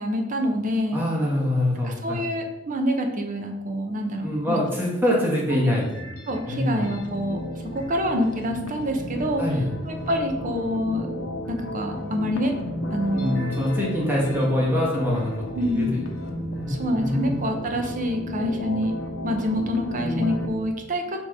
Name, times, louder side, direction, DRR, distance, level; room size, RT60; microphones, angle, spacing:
voice 1, 0.0-1.0 1.8-4.6 6.3-7.4 7.7-9.4 9.9-11.1 11.5-12.5 12.9-13.4 15.5-16.0 16.7-18.9 19.2-21.2, equal, 40° right, 3 dB, 0.8 m, -26 dB
voice 2, 0.9-2.2 4.2-6.2 6.4-6.8 9.4-9.8 13.1-15.3 15.6-17.3, left 1 dB, 10° right, -5 dB, 1.4 m, -25 dB
sound 1, 5.8-20.5, left 1 dB, 70° left, 1.0 m, -33 dB
6.6 x 3.1 x 4.8 m, 1.0 s
head